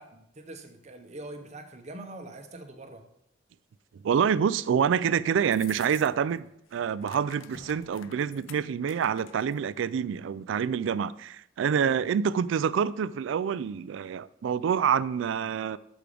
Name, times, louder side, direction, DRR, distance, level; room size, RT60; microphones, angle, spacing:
voice 1, 0.0-3.1 11.7-12.1, right 2 dB, 35° right, 0.9 m, -44 dB
voice 2, 4.0-15.8, right 7 dB, 65° right, 0.3 m, -27 dB
sound 1, 5.4-6.4 6.6-9.6, left 11 dB, 80° left, 0.5 m, -50 dB
Slam, 6.3-6.4 6.8-8.6, left 1 dB, 55° left, 1.5 m, -53 dB
6.8 x 6.2 x 5.1 m
head